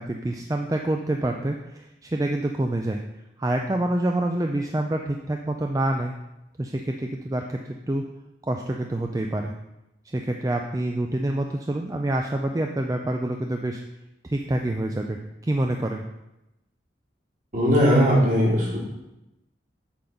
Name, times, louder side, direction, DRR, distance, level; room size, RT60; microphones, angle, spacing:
voice 1, 0.0-3.0 3.4-6.1 6.6-7.6 7.9-8.0 8.5-9.5 10.1-13.8 14.2-16.0, right 1 dB, 20° right, 3 dB, 0.4 m, -27 dB
voice 2, 17.5-18.8, equal, 45° right, -6 dB, 2.9 m, -19 dB
8.5 x 3.9 x 5.8 m, 0.93 s
head